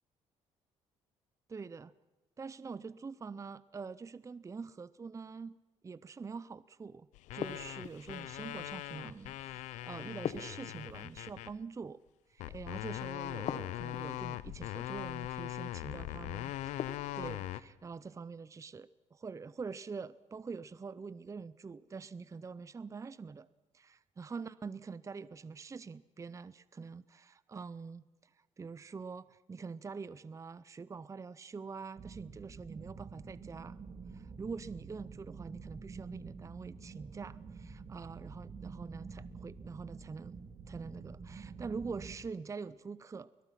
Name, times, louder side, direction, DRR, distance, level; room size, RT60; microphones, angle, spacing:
voice 1, 1.5-1.9 2.4-5.6 5.8-7.1 7.3-12.0 12.5-16.5 17.1-23.5 24.2-28.3 28.6-33.8 34.1-43.4, right 5 dB, 25° right, 18 dB, 0.6 m, -45 dB
sound 1, 7.1-11.6 12.4-17.6, left 15 dB, 90° left, 0.7 m, -41 dB
sound 2, 7.4-8.2 10.2-11.3 13.5-14.2 16.8-17.4, left 8 dB, 65° left, 1.4 m, -41 dB
sound 3, 32.0-42.2, right 5 dB, 50° right, 2.3 m, -48 dB
21.5 x 21.0 x 5.9 m, 1.1 s
cardioid pair, 85°, 12 cm